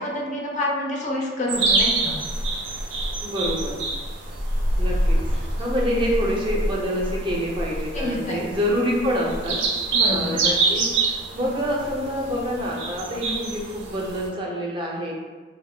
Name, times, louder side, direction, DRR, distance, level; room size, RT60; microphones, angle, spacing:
voice 1, 0.0-2.2 7.9-8.4 9.9-10.4, left 1 dB, 40° left, -1 dB, 0.4 m, -27 dB
sound 1, 1.5-14.3, right 2 dB, 85° right, 0.4 m, -26 dB
voice 2, 3.2-3.8 4.8-9.6 10.1-15.1, equal, 25° right, -2 dB, 0.4 m, -27 dB
2.1 x 2.1 x 3.1 m, 1.4 s
head